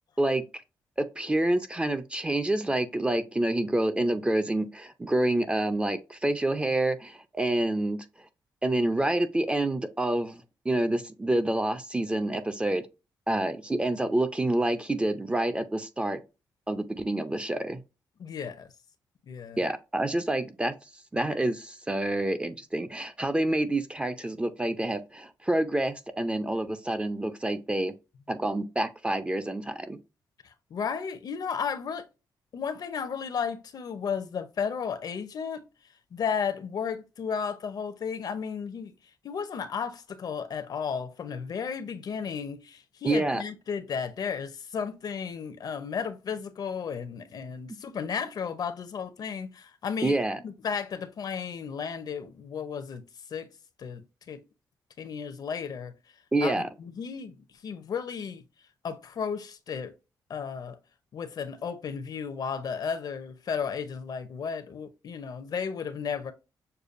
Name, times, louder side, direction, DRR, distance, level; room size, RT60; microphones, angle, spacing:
voice 1, 1.0-8.0 8.6-12.9 13.3-16.2 16.7-17.8 19.6-20.7 21.1-27.9 28.3-30.0 43.0-43.4 50.0-50.4 56.3-56.7, right 1 dB, 15° right, 0.5 m, -27 dB
voice 2, 18.2-18.7 19.3-19.6 30.4-32.0 32.5-35.6 36.1-38.9 39.2-50.2 50.4-53.0 53.3-53.5 53.8-54.4 55.0-55.9 56.4-56.5 56.8-57.3 57.6-58.4 58.8-59.9 60.3-60.8 61.1-66.3, left 6 dB, 60° left, 0.6 m, -34 dB
6.7 x 2.2 x 2.5 m
cardioid pair, 105°, 8 cm